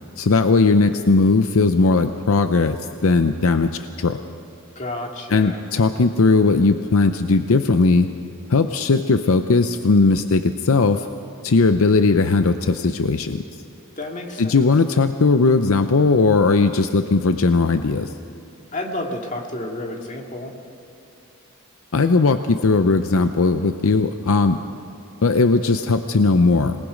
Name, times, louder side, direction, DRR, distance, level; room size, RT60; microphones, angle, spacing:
voice 1, 0.2-4.2 5.3-8.1 8.5-11.1 11.4-13.4 14.4-18.1 21.9-24.6 25.2-26.8, left 3 dB, 70° left, 9 dB, 0.6 m, -18 dB
voice 2, 4.8-5.6 14.0-14.7 18.7-20.5, left 1 dB, 35° left, 1 dB, 2.1 m, -30 dB
26.5 x 19.0 x 5.1 m, 2.8 s
head